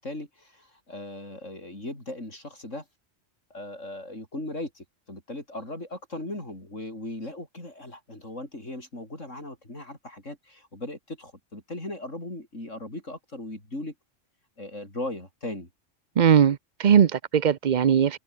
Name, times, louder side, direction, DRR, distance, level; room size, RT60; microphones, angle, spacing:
voice 1, 0.0-2.9 3.5-13.9 14.6-15.7, left 1 dB, 70° left, 7.5 m, -38 dB
voice 2, 16.2-18.2, right 8 dB, 45° right, 0.6 m, -20 dB
omnidirectional pair, 1.3 m